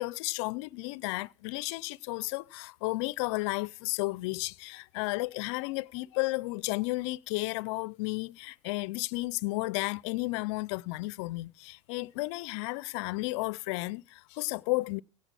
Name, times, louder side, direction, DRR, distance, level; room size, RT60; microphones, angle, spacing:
voice 1, 0.0-15.0, left 22 dB, 55° left, 0.5 m, -33 dB
17.0 x 6.6 x 6.2 m
hypercardioid pair, 95°, 17 cm